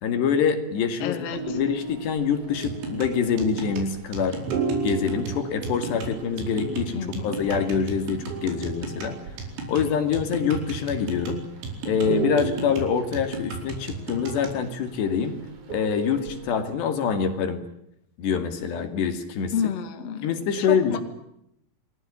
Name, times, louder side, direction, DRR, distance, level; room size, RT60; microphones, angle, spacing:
voice 1, 0.0-4.4 4.8-9.2 9.7-11.4 11.9-15.4 15.7-17.6 18.2-19.5 20.2-21.0, left 7 dB, 60° left, 8 dB, 4.3 m, -25 dB
voice 2, 1.0-1.6 7.0-7.3 19.5-20.3 20.6-21.0, left 7 dB, 45° left, 7 dB, 2.4 m, -29 dB
sound 1, 1.3-16.6, right 5 dB, 40° right, 4.5 m, -35 dB
sound 2, 2.6-14.6, right 3 dB, 70° right, 6.9 m, -35 dB
29.0 x 21.0 x 8.6 m, 0.77 s
omnidirectional pair, 5.9 m